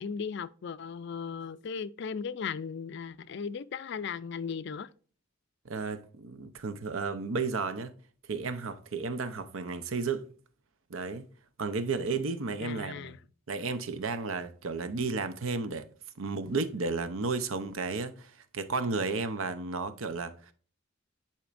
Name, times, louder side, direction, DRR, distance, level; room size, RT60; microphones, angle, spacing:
voice 1, 0.0-4.9 12.6-13.2, left 6 dB, 55° left, 0.4 m, -37 dB
voice 2, 5.6-7.9 8.3-10.3 10.9-11.3 11.6-13.1 13.5-15.9 16.2-20.5, right 4 dB, 75° right, 0.7 m, -33 dB
10.0 x 4.5 x 2.5 m
head